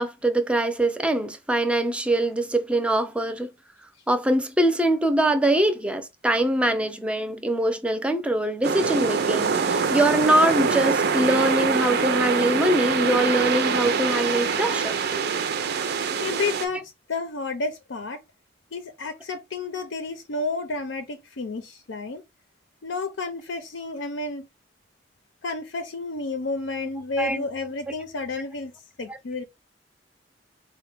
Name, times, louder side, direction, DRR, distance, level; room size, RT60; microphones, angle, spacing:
voice 1, 0.0-3.5 4.1-14.9 27.2-27.4 29.1-29.2, right 1 dB, 5° right, 0.5 m, -23 dB
sound 1, 8.6-16.7, right 5 dB, 60° right, 0.5 m, -24 dB
voice 2, 15.0-15.7 15.9-18.2 18.7-22.2 22.8-24.5 25.4-28.7 29.0-29.4, left 3 dB, 85° left, 0.6 m, -31 dB
4.2 x 2.1 x 3.3 m
head